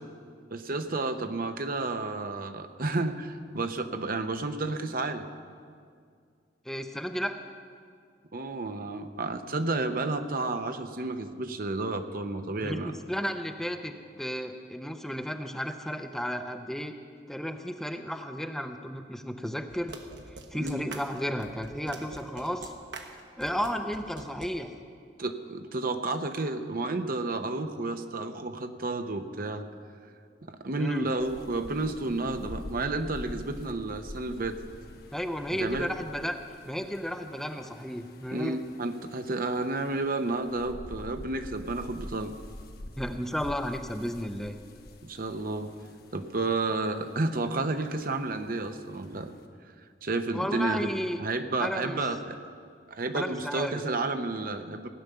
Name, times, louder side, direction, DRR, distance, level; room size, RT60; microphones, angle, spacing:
voice 1, 0.5-5.3 8.3-13.0 20.6-20.8 25.2-29.6 30.5-34.6 35.5-35.9 38.3-42.4 45.0-45.7 46.1-49.3 50.0-50.9 51.2-52.4 52.9-54.9, right 2 dB, 55° right, 8 dB, 0.8 m, -31 dB
voice 2, 6.7-7.4 12.6-17.0 17.3-20.0 20.5-22.7 23.4-24.7 30.8-31.1 35.1-36.4 36.6-38.6 43.0-44.5 50.3-51.2 51.6-52.0 53.1-53.8, equal, ahead, 6 dB, 0.6 m, -33 dB
sound 1, 19.7-24.5, right 3 dB, 70° right, 1.3 m, -44 dB
sound 2, 31.2-49.5, left 1 dB, 60° left, 1.2 m, -47 dB
16.5 x 9.7 x 6.8 m, 2.2 s
head